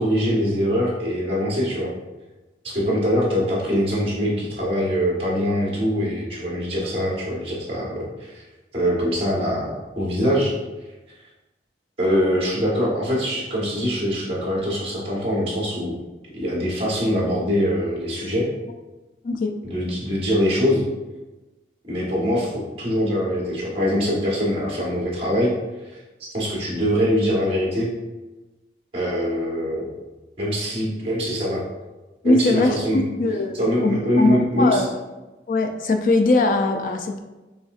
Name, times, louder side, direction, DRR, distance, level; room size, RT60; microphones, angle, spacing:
voice 1, 0.0-1.9 2.6-8.4 8.7-10.6 12.0-15.9 16.3-18.5 19.6-20.8 21.9-25.5 26.3-27.9 28.9-29.9 30.4-31.6 32.2-33.0 33.5-34.8, equal, 30° right, -5 dB, 1.2 m, -23 dB
voice 2, 32.2-33.5 33.8-34.9 35.5-37.2, left 2 dB, 50° left, 4 dB, 0.4 m, -21 dB
5.3 x 3.3 x 2.4 m, 1.1 s
head